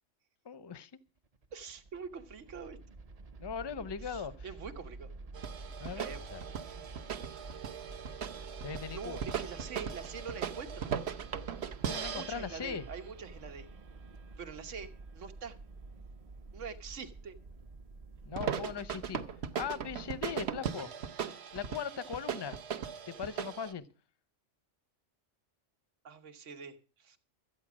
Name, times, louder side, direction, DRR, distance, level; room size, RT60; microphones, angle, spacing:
voice 1, 0.4-0.9 3.4-4.5 5.8-6.4 8.6-9.2 11.8-12.9 18.2-19.2 19.6-20.9 21.5-22.6 23.1-23.9, left 7 dB, 30° left, 0.5 m, -39 dB
sound 1, 1.2-20.6, right 3 dB, 35° right, 0.7 m, -49 dB
voice 2, 1.5-2.8 4.0-5.1 5.9-6.3 7.1-7.2 8.9-10.9 12.0-13.7 14.4-15.6 16.5-17.4 26.0-27.2, right 6 dB, 80° right, 1.5 m, -45 dB
sound 2, 5.3-13.0 18.3-23.7, right 8 dB, 60° right, 1.1 m, -39 dB
13.5 x 9.2 x 6.0 m
omnidirectional pair, 1.3 m